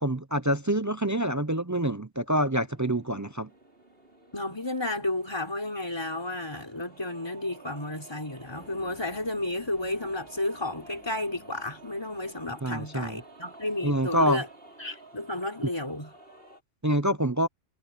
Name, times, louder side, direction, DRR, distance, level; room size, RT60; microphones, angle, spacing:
voice 1, 0.0-3.5 12.6-13.2 13.8-14.4 16.8-17.5, right 1 dB, 20° right, 0.5 m, -26 dB
sound 1, 2.3-16.6, right 3 dB, 55° right, 5.0 m, -52 dB
voice 2, 4.3-14.5 14.8-16.1, left 2 dB, 20° left, 3.8 m, -32 dB
sound 2, 8.5-13.7, left 2 dB, 90° left, 4.8 m, -55 dB
omnidirectional pair, 1.2 m